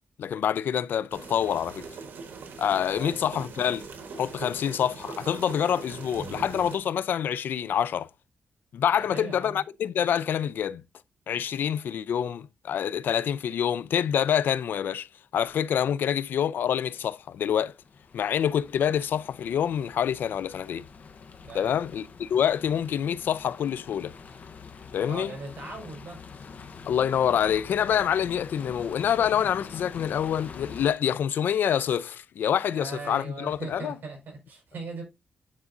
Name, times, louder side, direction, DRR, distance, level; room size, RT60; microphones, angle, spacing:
voice 1, 0.2-1.9 2.6-3.9 4.2-8.1 8.7-10.8 11.3-15.1 15.3-17.7 18.1-20.9 21.5-24.1 24.9-25.3 26.9-34.0, left 9 dB, 80° left, 0.4 m, -26 dB
sound 1, 1.1-6.8, right 4 dB, 90° right, 1.4 m, -41 dB
voice 2, 2.9-3.3 9.0-9.6 21.4-21.8 25.1-26.2 32.7-35.0, right 3 dB, 65° right, 4.6 m, -39 dB
sound 2, 17.3-30.9, left 5 dB, 55° left, 0.9 m, -45 dB
9.5 x 4.9 x 2.6 m
wide cardioid pair, 125°, 3 cm